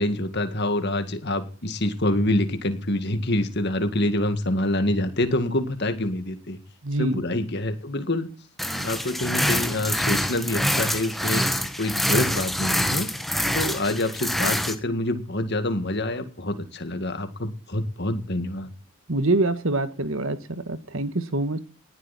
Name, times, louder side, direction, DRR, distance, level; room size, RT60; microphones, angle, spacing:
voice 1, 0.0-6.6 7.0-8.3 8.8-11.5 11.8-13.1 13.5-18.7, left 1 dB, 50° left, 9 dB, 2.0 m, -26 dB
voice 2, 6.8-7.2 19.1-21.6, right 2 dB, 65° right, 11 dB, 1.6 m, -25 dB
sound 1, 8.6-14.7, equal, ahead, 1.2 m, -25 dB
19.0 x 11.5 x 4.2 m, 0.38 s
head